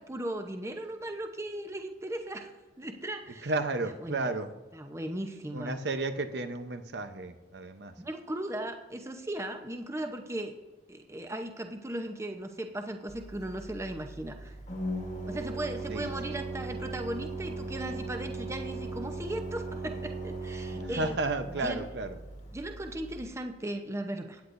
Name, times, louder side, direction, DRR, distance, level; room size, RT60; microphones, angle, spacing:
voice 1, 0.0-2.5 2.8-3.5 4.0-4.3 4.7-5.9 8.0-10.5 10.9-14.6 15.3-21.2 21.5-21.9 22.5-24.4, right 1 dB, 15° right, 5 dB, 0.8 m, -37 dB
voice 2, 3.4-4.5 5.5-7.9 15.9-16.3 20.8-22.2, right 2 dB, 70° right, 9 dB, 0.8 m, -33 dB
Organ, 13.1-23.2, right 2 dB, 40° left, 1.3 m, -38 dB
16.0 x 9.8 x 2.6 m, 1.2 s
head